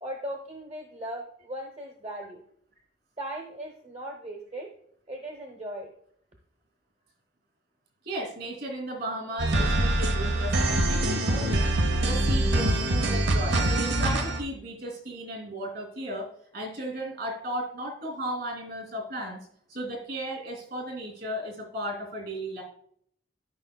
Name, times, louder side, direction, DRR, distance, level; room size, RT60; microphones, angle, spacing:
voice 1, 0.0-2.4 3.2-4.7 5.1-5.9, right 1 dB, 40° right, 1 dB, 0.9 m, -38 dB
voice 2, 8.0-11.6 12.0-16.3 16.5-22.6, right 1 dB, 60° right, 3 dB, 2.8 m, -35 dB
sound 1, 9.4-14.4, right 1 dB, 85° right, 0.9 m, -24 dB
13.0 x 5.4 x 2.3 m, 0.66 s
head